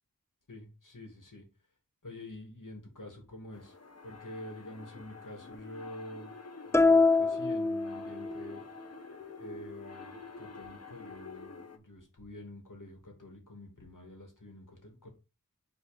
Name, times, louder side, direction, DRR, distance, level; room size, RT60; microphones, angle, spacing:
voice 1, 0.5-1.4 2.0-3.7 4.0-6.3 6.7-8.6 9.4-15.1, left 1 dB, 65° left, 2.7 m, -47 dB
sound 1, 3.5-11.8, left 4 dB, 45° left, 1.1 m, -49 dB
sound 2, 6.7-8.5, left 3 dB, 10° left, 0.3 m, -25 dB
5.6 x 4.3 x 5.1 m
wide cardioid pair, 45°, 34 cm